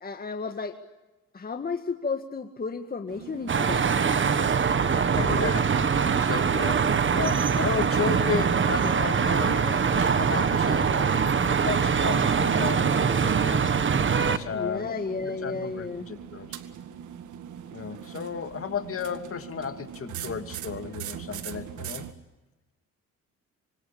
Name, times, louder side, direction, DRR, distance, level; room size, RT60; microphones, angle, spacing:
voice 1, 0.0-0.7 1.3-3.9 13.4-13.7 14.5-16.1, left 4 dB, 30° left, 6 dB, 1.9 m, -33 dB
sound 1, 3.1-22.1, right 9 dB, 80° right, 2.0 m, -42 dB
sound 2, 3.5-14.4, right 6 dB, 40° right, 1.7 m, -23 dB
voice 2, 5.1-13.6 14.1-16.5 17.7-22.1, left 6 dB, 45° left, 8 dB, 2.6 m, -34 dB
26.0 x 25.5 x 8.7 m, 1.1 s
cardioid pair, 90°, 30 cm